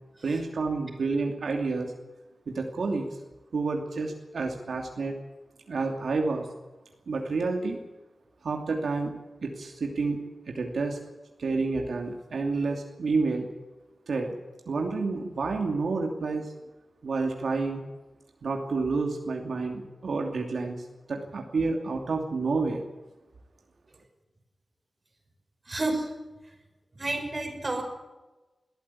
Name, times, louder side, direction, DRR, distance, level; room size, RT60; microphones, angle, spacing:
voice 1, 0.2-1.9 2.5-3.1 3.5-5.1 5.7-6.5 7.1-7.8 8.4-9.1 9.4-10.2 10.5-11.0 11.4-13.5 14.1-14.3 14.7-16.5 17.0-17.8 18.4-22.8, right 3 dB, 80° right, 3 dB, 2.7 m, -29 dB
voice 2, 25.7-26.1 27.0-27.8, right 2 dB, 30° right, 3 dB, 5.6 m, -29 dB
21.5 x 14.5 x 8.6 m, 1.1 s
wide cardioid pair, 120°, 0 cm